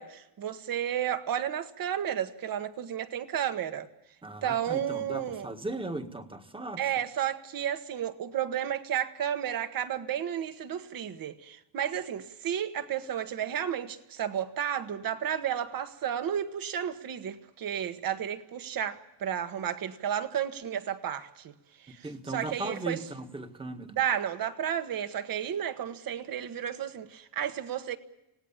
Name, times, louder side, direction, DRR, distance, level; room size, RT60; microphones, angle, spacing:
voice 1, 0.0-3.9 4.4-5.5 6.8-21.5 21.8-23.0 24.0-28.0, right 9 dB, 50° right, 1.8 m, -32 dB
voice 2, 4.2-6.8 22.0-24.0, right 2 dB, 10° right, 1.7 m, -37 dB
28.0 x 18.0 x 7.4 m
cardioid pair, 140°, 43 cm